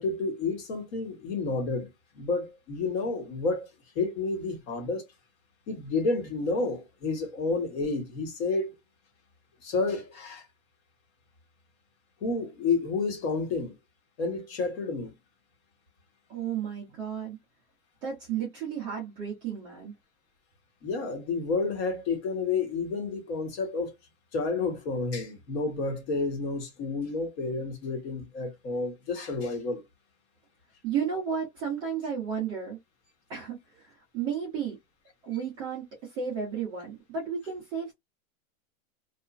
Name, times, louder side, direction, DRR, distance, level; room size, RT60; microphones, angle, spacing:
voice 1, 0.0-1.9 2.1-3.7 3.9-5.1 5.7-8.7 9.6-10.4 12.2-13.7 14.2-15.1 20.8-23.9 24.3-29.8, left 3 dB, 50° left, 1.2 m, -30 dB
voice 2, 16.3-17.4 18.0-19.9 30.8-32.8 33.3-33.6 33.8-34.7 35.2-35.9 36.1-37.9, right 7 dB, 10° right, 0.3 m, -33 dB
2.9 x 2.4 x 2.3 m
supercardioid pair, 160°, 41 cm